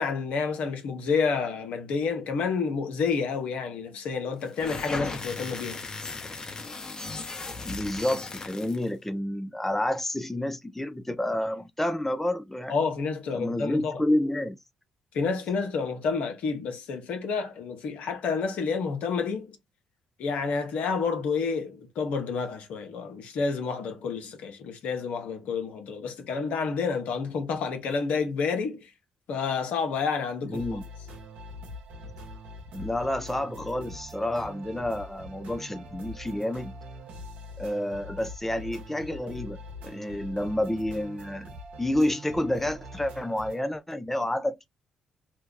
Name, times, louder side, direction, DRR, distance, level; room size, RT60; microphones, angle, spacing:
voice 1, 0.0-5.8 12.7-14.0 15.1-19.6 20.2-28.9 29.3-30.6, left 5 dB, 70° left, 0.8 m, -29 dB
sound 1, 4.5-8.9, left 3 dB, 30° left, 1.1 m, -37 dB
voice 2, 7.6-12.7 13.3-14.6 30.4-30.8 32.7-36.7 37.6-39.6 39.8-41.5 41.8-44.7, left 1 dB, 10° left, 0.6 m, -29 dB
sound 2, 30.5-43.6, equal, 75° right, 1.0 m, -43 dB
2.8 x 2.2 x 3.6 m
hypercardioid pair, 50°, 3 cm